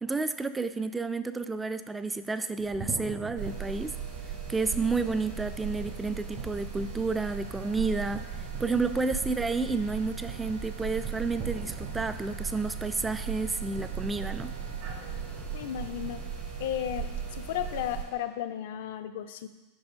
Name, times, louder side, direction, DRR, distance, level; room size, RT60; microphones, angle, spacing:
voice 1, 0.0-4.0 4.5-8.3 8.6-14.5, right 3 dB, 15° right, 11 dB, 0.3 m, -30 dB
sound 1, 2.6-16.3, right 5 dB, 40° right, 0.8 m, -45 dB
sound 2, 3.4-18.0, right 6 dB, 55° right, 2.1 m, -37 dB
voice 2, 15.5-16.2 16.6-19.5, left 10 dB, 65° left, 9 dB, 0.4 m, -34 dB
5.8 x 5.2 x 3.6 m, 1.1 s
hypercardioid pair, 90°, 0 cm